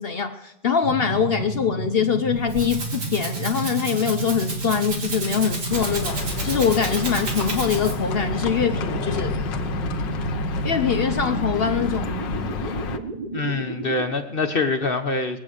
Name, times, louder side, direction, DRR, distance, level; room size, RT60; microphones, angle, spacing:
voice 1, 0.0-9.3 10.6-12.1, left 7 dB, 70° left, 8 dB, 0.5 m, -23 dB
sound 1, 0.8-14.1, right 4 dB, 30° right, 1.2 m, -31 dB
Rattle (instrument), 2.2-8.2, right 2 dB, 70° right, 3.1 m, -33 dB
Livestock farm animals working animals, 5.7-13.0, left 4 dB, 90° left, 1.7 m, -30 dB
voice 2, 13.3-15.4, left 3 dB, 40° left, 7 dB, 0.9 m, -25 dB
20.0 x 8.7 x 6.4 m, 0.90 s
omnidirectional pair, 1.9 m